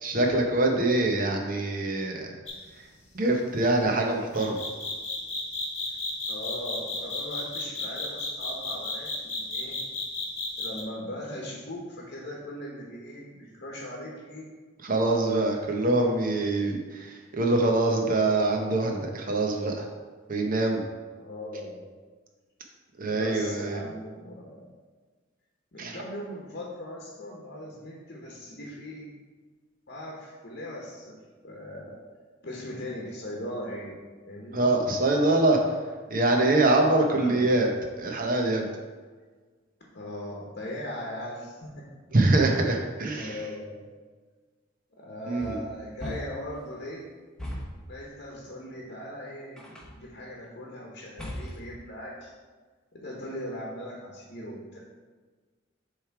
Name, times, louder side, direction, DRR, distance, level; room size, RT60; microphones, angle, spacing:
voice 1, 0.0-2.3 2.8-2.9 3.1-4.6 14.8-19.9 20.3-20.9 23.0-23.8 25.8-26.0 34.5-35.6 36.1-37.7 38.0-38.7 42.1-43.4 45.3-45.6, right 2 dB, 45° right, 2 dB, 0.9 m, -24 dB
sound 1, 2.5-2.7 4.3-10.8, left 3 dB, 35° left, 1.3 m, -33 dB
voice 2, 6.3-9.8 10.6-14.5 15.7-15.9 21.2-21.8 23.0-24.7 25.7-29.1 29.9-31.2 31.4-32.0 32.4-33.9 34.2-34.7 37.1-37.4 39.9-41.9 43.1-43.8 44.9-47.1 47.9-52.3 52.9-54.8, left 1 dB, 55° left, -3 dB, 1.0 m, -39 dB
sound 2, 45.4-46.6 47.4-47.9 49.6-50.1 51.2-51.8, left 1 dB, 5° left, 0.9 m, -38 dB
7.0 x 3.3 x 4.6 m, 1.4 s
head